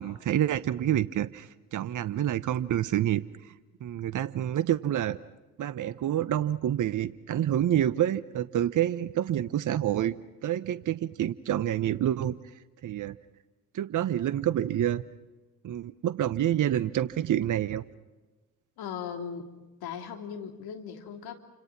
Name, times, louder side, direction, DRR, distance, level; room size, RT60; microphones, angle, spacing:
voice 1, 0.0-3.2 3.8-5.2 5.6-10.1 10.4-12.3 12.8-13.2 13.7-15.0 15.6-17.8, right 11 dB, 45° right, 16 dB, 1.0 m, -28 dB
voice 2, 18.8-19.5 19.8-21.3, left 7 dB, 65° left, 5 dB, 3.1 m, -38 dB
29.0 x 26.5 x 6.1 m, 1.2 s
hypercardioid pair, 50°, 41 cm